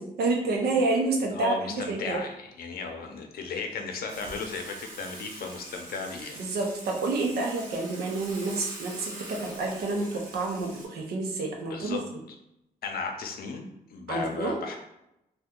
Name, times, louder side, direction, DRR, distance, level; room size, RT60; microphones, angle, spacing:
voice 1, 0.0-2.2 6.4-12.0 14.1-14.6, right 3 dB, 85° right, 1 dB, 0.7 m, -29 dB
voice 2, 1.3-6.4 11.7-12.0 12.8-14.8, left 4 dB, 70° left, 3 dB, 0.6 m, -35 dB
Water / Water tap faucet / Sink (filling or washing), 4.1-10.8, right 2 dB, 60° right, 1.1 m, -44 dB
2.8 x 2.3 x 3.6 m, 0.84 s
cardioid pair, 75°, 16 cm